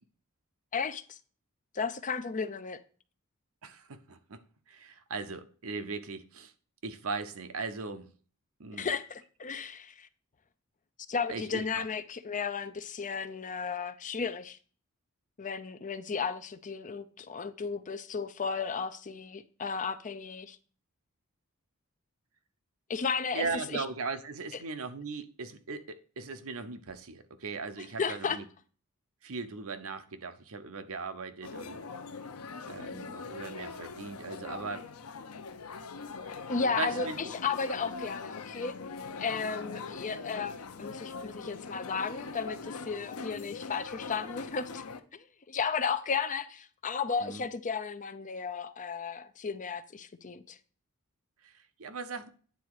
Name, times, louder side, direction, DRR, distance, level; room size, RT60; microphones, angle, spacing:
voice 1, 0.7-1.2 1.7-2.8 8.7-10.1 11.1-14.6 15.4-20.6 22.9-23.5 23.7-23.8 28.0-28.4 36.5-38.7 39.2-44.8 45.1-50.6, left 5 dB, 35° left, 0.6 m, -34 dB
voice 2, 3.6-4.4 4.7-6.5 6.8-8.1 8.6-8.9 11.3-11.8 23.3-28.4 29.2-31.8 32.7-34.9 36.7-37.3 47.2-47.5 51.4-52.3, right 4 dB, 70° right, 0.8 m, -38 dB
sound 1, 31.4-45.0, left 4 dB, 75° left, 0.7 m, -42 dB
9.3 x 4.1 x 4.8 m
head